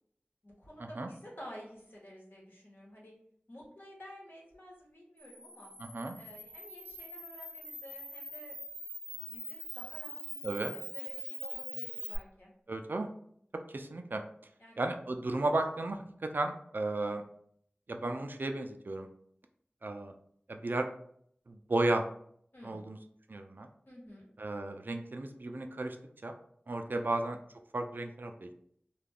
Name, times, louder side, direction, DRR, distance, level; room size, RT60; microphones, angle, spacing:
voice 1, 0.4-3.1 3.5-5.7 6.2-8.6 9.1-10.4 10.7-12.5 14.6-14.8 15.3-15.5 22.5-22.8 23.9-24.3 26.9-27.1, equal, 70° left, -4 dB, 1.1 m, -51 dB
Camera, 5.2-12.2, equal, 35° left, 1.0 m, -43 dB
voice 2, 5.8-6.2 10.4-10.7 12.7-13.1 13.7-14.2 14.8-17.2 17.9-19.1 19.8-20.1 20.5-20.9 21.5-22.0 22.6-23.0 23.3-23.7 24.4-26.0 26.2-26.3 26.7-27.4 27.7-28.5, right 2 dB, 60° right, 5 dB, 0.3 m, -34 dB
2.3 x 2.2 x 3.4 m, 0.66 s
wide cardioid pair, 50°, 4 cm